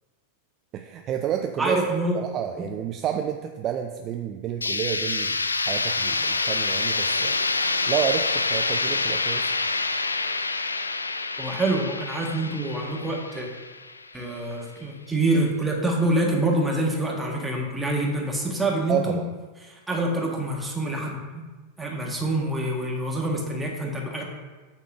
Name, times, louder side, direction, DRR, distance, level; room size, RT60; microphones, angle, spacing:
voice 1, 0.7-1.9 2.1-5.4 5.7-9.5 18.9-19.3, right 9 dB, 30° right, 5 dB, 0.4 m, -30 dB
voice 2, 1.6-2.2 11.4-13.5 14.1-19.2 19.7-21.4 21.8-24.2, right 1 dB, 5° right, -1 dB, 1.6 m, -26 dB
sound 1, 4.6-14.4, left 3 dB, 80° left, 0.3 m, -27 dB
8.1 x 3.7 x 6.0 m, 1.3 s
figure-of-eight pair, 90°, 0 cm